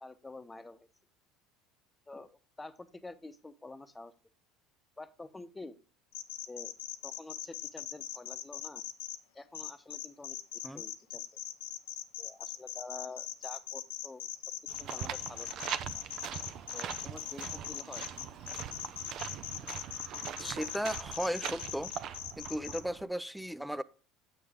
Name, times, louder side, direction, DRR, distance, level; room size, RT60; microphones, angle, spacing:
voice 1, 0.0-0.9 2.1-4.1 5.0-5.8 6.5-6.7 7.0-8.8 9.3-11.2 12.2-14.2 14.8-15.6 16.7-18.0, left 2 dB, 15° left, 0.9 m, -48 dB
sound 1, 6.1-9.2 9.5-22.8, left 12 dB, 80° left, 0.6 m, -40 dB
sound 2, 14.7-23.0, right 9 dB, 55° right, 0.6 m, -42 dB
voice 2, 20.4-21.9 22.4-23.8, equal, ahead, 0.4 m, -35 dB
8.6 x 6.5 x 3.6 m
hypercardioid pair, 85°, 0 cm